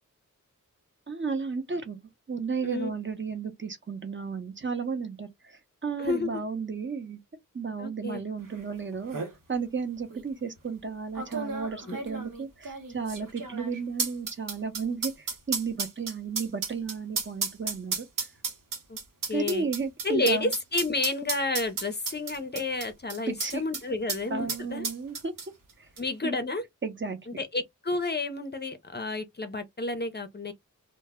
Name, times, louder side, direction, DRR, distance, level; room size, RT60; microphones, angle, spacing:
voice 1, 1.1-2.0 2.3-7.2 7.5-9.2 9.5-18.1 19.3-20.5 23.3-23.6 24.3-25.3 25.8-25.9 26.2-26.4 26.8-27.2, right 5 dB, 35° right, 0.5 m, -33 dB
voice 2, 6.0-6.3 7.8-8.2 11.9-12.0 18.9-19.0 19.3-19.7 20.0-24.9 26.0-26.6 27.4-30.5, left 3 dB, 30° left, 0.5 m, -30 dB
sound 1, 8.6-8.7 8.9-9.3 10.1-10.2 11.2-23.8 24.1-24.2 24.5-25.7 26.0-26.1, right 4 dB, 80° right, 0.8 m, -33 dB
2.1 x 2.0 x 3.4 m
wide cardioid pair, 80°, 33 cm